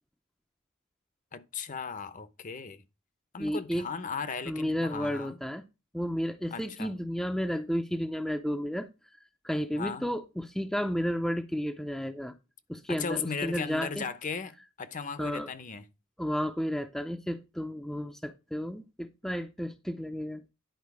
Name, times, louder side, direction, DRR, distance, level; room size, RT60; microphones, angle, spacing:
voice 1, 1.3-2.8 3.3-5.4 6.5-6.9 9.8-10.1 12.9-15.8, left 5 dB, 40° left, 0.7 m, -37 dB
voice 2, 3.4-3.9 4.5-5.6 5.9-8.9 9.4-12.3 12.7-14.1 15.2-15.5 16.2-20.4, equal, ahead, 0.5 m, -32 dB
10.5 x 4.6 x 4.7 m
head